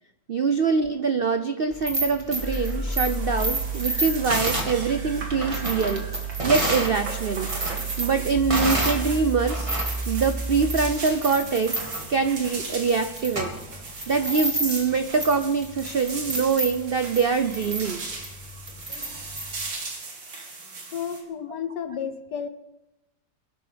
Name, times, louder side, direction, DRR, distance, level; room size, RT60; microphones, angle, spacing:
voice 1, 0.3-6.0 6.4-7.5 8.0-9.7 10.1-11.8 12.1-13.5 14.1-18.1, right 5 dB, 90° right, 8 dB, 0.5 m, -24 dB
sound 1, 1.7-7.0 7.3-9.1 9.4-19.7, right 1 dB, 15° right, 2.2 m, -31 dB
sound 2, 2.3-21.2, right 3 dB, 70° right, 3.1 m, -38 dB
sound 3, 2.4-10.9, right 3 dB, ahead, 3.7 m, -32 dB
voice 2, 20.9-22.5, left 7 dB, 65° left, 11 dB, 1.5 m, -32 dB
22.5 x 12.0 x 5.2 m, 0.98 s
omnidirectional pair, 2.1 m